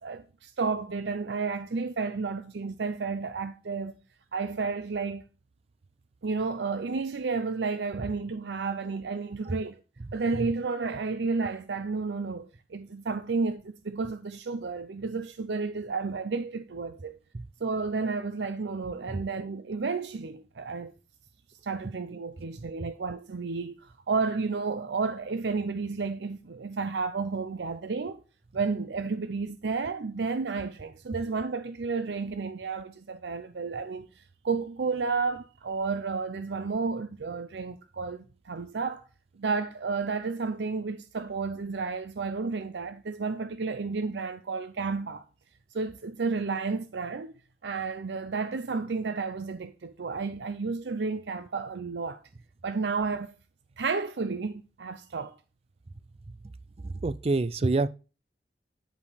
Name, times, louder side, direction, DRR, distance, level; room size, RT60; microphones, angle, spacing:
voice 1, 0.0-4.0 4.3-5.3 6.2-9.8 10.1-17.2 17.6-20.9 21.6-28.2 28.5-39.0 39.4-45.2 45.7-47.3 47.6-52.2 52.6-53.3 53.8-55.4, right 4 dB, 85° right, 0.6 m, -32 dB
voice 2, 10.0-10.5 17.3-17.5 19.1-19.2 21.8-21.9 22.6-22.9 56.3-56.4 56.8-57.9, right 3 dB, 35° right, 0.4 m, -29 dB
10.5 x 5.1 x 3.4 m
head